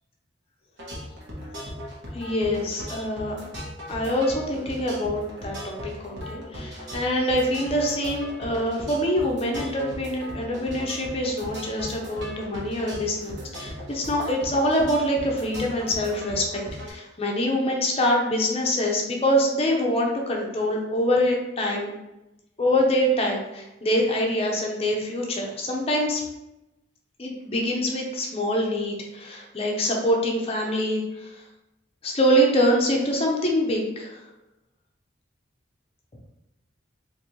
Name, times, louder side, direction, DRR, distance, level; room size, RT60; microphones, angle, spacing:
sound 1, 0.8-16.9, equal, 65° right, 1.1 m, -38 dB
voice 1, 2.1-3.4 3.9-21.9 22.6-26.2 27.2-31.3 32.0-34.2, equal, 30° left, 0 dB, 0.6 m, -25 dB
3.9 x 2.6 x 3.0 m, 0.95 s
head